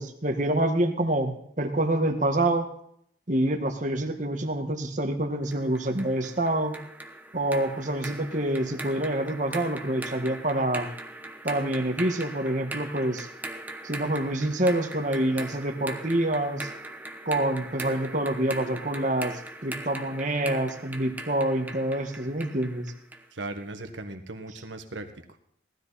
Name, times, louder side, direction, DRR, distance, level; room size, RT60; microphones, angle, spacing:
voice 1, 0.0-2.7 3.3-6.8 7.3-10.9 11.4-13.3 13.8-16.7 17.2-22.9, right 1 dB, 40° right, 5 dB, 1.6 m, -27 dB
sound 1, 5.5-23.3, right 2 dB, 10° right, 0.9 m, -40 dB
voice 2, 23.3-25.1, right 2 dB, 85° right, 6 dB, 1.6 m, -37 dB
18.0 x 13.0 x 4.2 m, 0.69 s
head